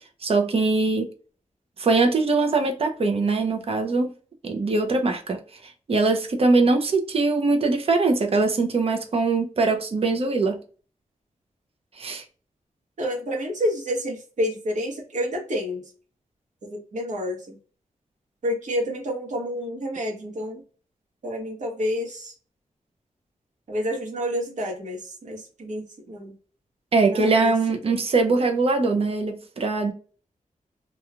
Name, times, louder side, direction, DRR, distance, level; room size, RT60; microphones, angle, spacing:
voice 1, 0.2-1.1 1.8-4.1 4.4-5.4 5.6-10.6 12.0-12.2 26.9-29.9, right 3 dB, 45° right, 0.6 m, -22 dB
voice 2, 13.0-15.9 16.7-17.6 18.4-20.6 21.2-22.3 23.7-26.3 27.1-28.0, equal, 65° right, 1.1 m, -29 dB
3.0 x 2.3 x 2.3 m
wide cardioid pair, 155°, 13 cm